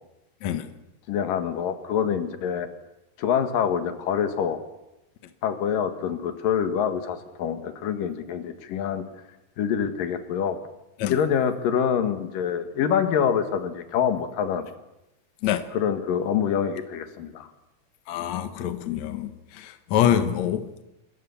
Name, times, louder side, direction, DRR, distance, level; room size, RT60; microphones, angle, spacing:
voice 1, 1.1-2.7 3.2-4.6 5.4-9.0 9.6-10.6 11.1-14.7 15.7-17.5, left 8 dB, 90° left, 3.4 m, -25 dB
voice 2, 18.1-20.8, left 10 dB, 60° left, 2.5 m, -25 dB
27.0 x 21.5 x 7.2 m
omnidirectional pair, 3.8 m